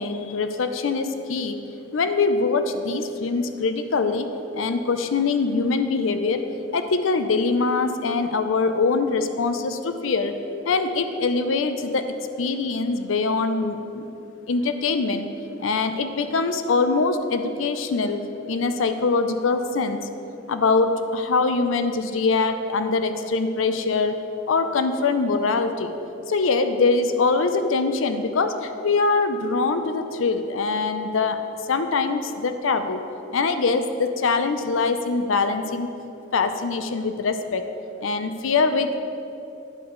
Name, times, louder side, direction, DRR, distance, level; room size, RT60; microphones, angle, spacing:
voice 1, 0.0-1.6 1.9-6.4 6.7-10.3 10.6-14.1 14.5-15.3 15.6-18.2 18.5-20.1 20.5-24.2 24.5-25.9 26.3-33.0 33.3-35.9 36.3-37.7 38.0-39.0, left 4 dB, 75° left, 8 dB, 0.5 m, -23 dB
11.5 x 3.9 x 6.8 m, 2.9 s
head